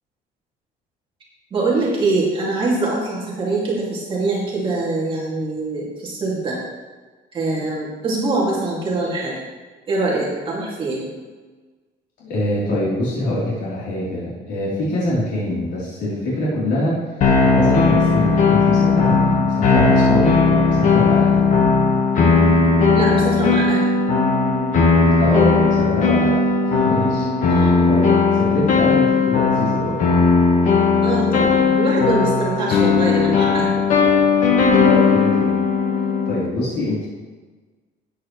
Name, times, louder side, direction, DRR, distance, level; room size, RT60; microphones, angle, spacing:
voice 1, 1.5-6.6 7.3-9.4 9.9-11.1 22.9-23.8 27.5-27.8 28.5-28.6 31.0-33.8, right 3 dB, 30° right, -5 dB, 2.3 m, -23 dB
voice 2, 12.2-21.4 25.1-30.0 34.8-35.6 36.3-37.1, left 1 dB, 75° left, -8 dB, 3.5 m, -25 dB
sound 1, 17.2-36.5, left 4 dB, 50° left, 1.4 m, -17 dB
13.0 x 9.5 x 3.2 m, 1.3 s
cardioid pair, 175°, 17 cm